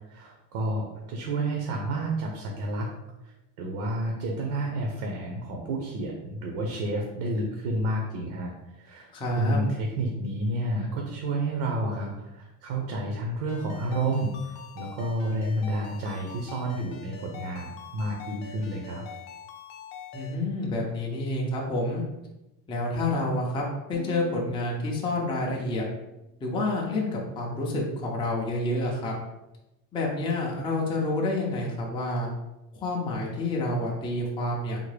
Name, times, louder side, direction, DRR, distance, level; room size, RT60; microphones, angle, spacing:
voice 1, 0.1-2.9 3.2-19.0, right 1 dB, 60° right, 0 dB, 0.7 m, -30 dB
voice 2, 9.1-9.6 20.1-22.0 22.7-23.6 23.9-25.8 26.4-29.1 29.9-32.3 32.8-34.8, left 2 dB, 15° left, -2 dB, 0.4 m, -28 dB
Ringtone, 13.5-20.4, left 7 dB, 70° left, 0.6 m, -44 dB
sound 1, 23.9-26.9, equal, 85° right, 1.5 m, -47 dB
3.6 x 2.1 x 3.2 m, 0.96 s
cardioid pair, 145°, 42 cm